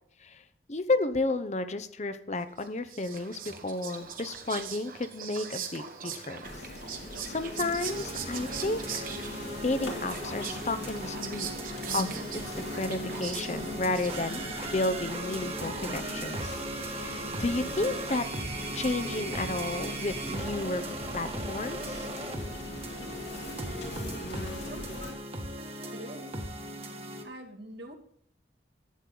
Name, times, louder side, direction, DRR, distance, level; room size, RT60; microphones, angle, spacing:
voice 1, 0.7-6.4 7.3-9.1 9.4-11.5 11.9-16.6 16.8-18.3 18.7-20.8 21.1-22.1, left 2 dB, 40° left, 11 dB, 0.7 m, -32 dB
Whispering, 2.6-14.5, right 7 dB, 50° right, 1.4 m, -41 dB
sound 1, 6.4-25.1, left 1 dB, 70° left, 2.4 m, -41 dB
sound 2, 7.9-27.2, right 1 dB, 35° right, 1.5 m, -38 dB
voice 2, 24.6-25.2 25.9-26.5 27.2-27.9, right 1 dB, 70° right, 2 dB, 2.5 m, -44 dB
12.0 x 8.6 x 4.0 m, 0.66 s
head